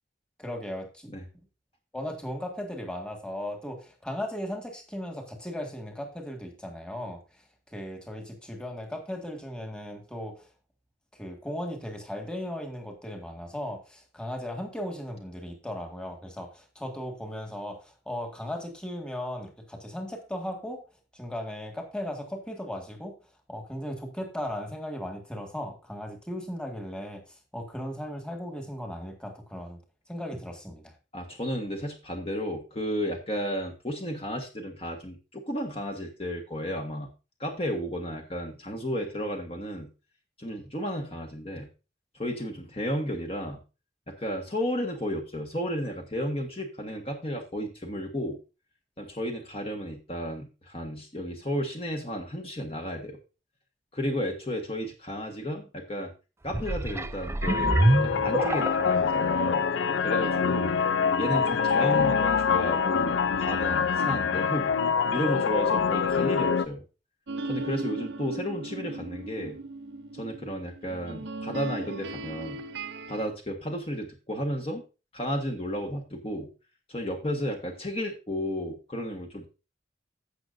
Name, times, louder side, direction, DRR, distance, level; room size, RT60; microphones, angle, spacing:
voice 1, 0.4-1.1 1.9-7.2 7.7-10.5 11.1-20.8 21.1-23.1 23.5-27.2 27.5-29.8 30.1-30.9, left 1 dB, 5° left, 2 dB, 1.8 m, -37 dB
voice 2, 31.1-37.1 37.4-39.9 40.4-41.7 42.1-43.6 44.1-48.4 49.0-53.2 53.9-56.1 56.4-59.6 60.0-60.8 61.2-64.7 65.1-66.8 67.4-69.6 70.1-72.6 73.1-74.8 75.1-76.5 76.9-79.5, equal, 30° left, 2 dB, 1.4 m, -33 dB
sound 1, 56.4-59.1 59.7-59.8, right 1 dB, 15° right, 0.4 m, -26 dB
sound 2, 57.4-66.7, left 6 dB, 75° left, 0.5 m, -25 dB
sound 3, 67.3-73.3, right 2 dB, 70° right, 0.7 m, -37 dB
15.5 x 6.2 x 2.6 m, 0.31 s
head